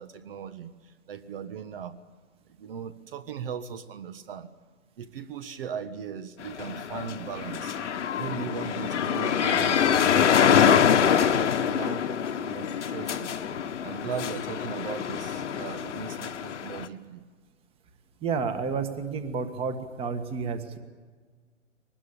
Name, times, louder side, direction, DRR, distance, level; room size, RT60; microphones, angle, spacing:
voice 1, 0.0-2.0 2.6-4.5 5.0-7.8 8.2-10.6 11.0-12.1 12.4-13.3 13.8-17.3, right 7 dB, 45° right, 11 dB, 1.4 m, -38 dB
sound 1, 6.4-16.9, left 8 dB, 65° left, 1.7 m, -25 dB
voice 2, 18.2-20.8, right 5 dB, 15° right, 9 dB, 1.6 m, -30 dB
23.0 x 20.0 x 8.8 m, 1.5 s
hypercardioid pair, 140°, 38 cm